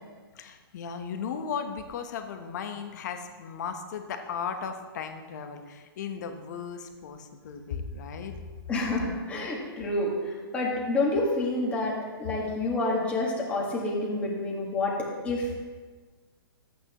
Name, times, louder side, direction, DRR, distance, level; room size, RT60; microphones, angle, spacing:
voice 1, 0.3-8.3, left 6 dB, 45° left, 6 dB, 1.0 m, -36 dB
voice 2, 8.7-15.6, left 2 dB, 10° left, -4 dB, 1.6 m, -28 dB
13.0 x 8.6 x 3.0 m, 1.4 s
hypercardioid pair, 160°, 13 cm